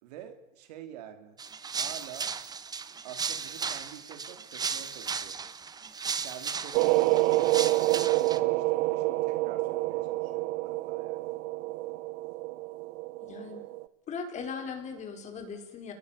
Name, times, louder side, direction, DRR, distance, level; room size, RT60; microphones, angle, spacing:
voice 1, 0.0-2.3 3.0-5.4 6.2-11.3, right 10 dB, 80° right, 7 dB, 3.8 m, -47 dB
sound 1, 1.4-8.4, right 5 dB, 20° right, 1.4 m, -36 dB
sound 2, 6.7-13.8, right 19 dB, 60° right, 1.3 m, -28 dB
voice 2, 13.2-13.6 14.1-15.9, left 5 dB, 35° left, 5 dB, 5.5 m, -38 dB
30.0 x 21.0 x 7.0 m, 0.95 s
supercardioid pair, 120°, 20 cm